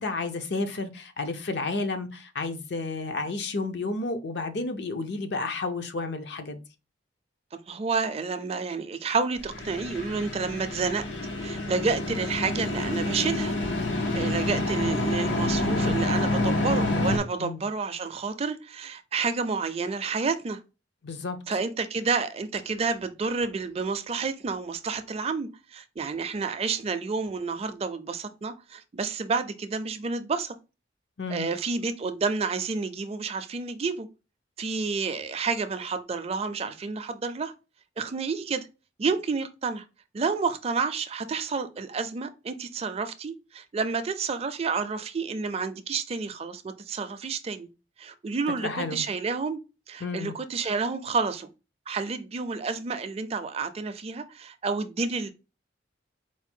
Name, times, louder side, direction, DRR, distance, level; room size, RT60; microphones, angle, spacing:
voice 1, 0.0-6.6 17.4-17.6 21.0-21.4 31.2-31.5 48.6-49.0 50.0-50.3, left 3 dB, 65° left, 0.6 m, -31 dB
voice 2, 7.5-11.0 11.4-13.6 14.1-20.6 21.5-30.5 31.3-34.1 34.6-37.5 38.0-38.7 39.0-39.8 40.1-47.7 48.0-49.6 49.9-51.5 51.9-55.3, right 4 dB, 35° right, 0.4 m, -30 dB
sound 1, 9.4-17.2, left 2 dB, 90° left, 0.9 m, -28 dB
4.5 x 2.2 x 4.3 m
head